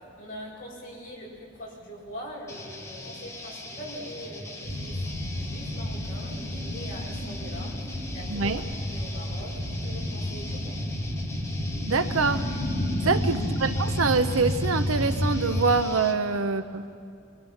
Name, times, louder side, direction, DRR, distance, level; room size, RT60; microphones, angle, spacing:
voice 1, 0.2-7.7 8.1-8.6 8.9-10.7 13.0-13.1, equal, 40° left, -4 dB, 6.7 m, -42 dB
sound 1, 2.5-16.2, left 2 dB, 15° left, 1.6 m, -41 dB
sound 2, 4.6-15.8, left 1 dB, 70° left, 4.8 m, -30 dB
voice 2, 8.3-8.6 11.9-12.4 13.0-16.9, right 4 dB, 75° right, 10 dB, 0.9 m, -25 dB
26.0 x 23.0 x 5.8 m, 2.3 s
head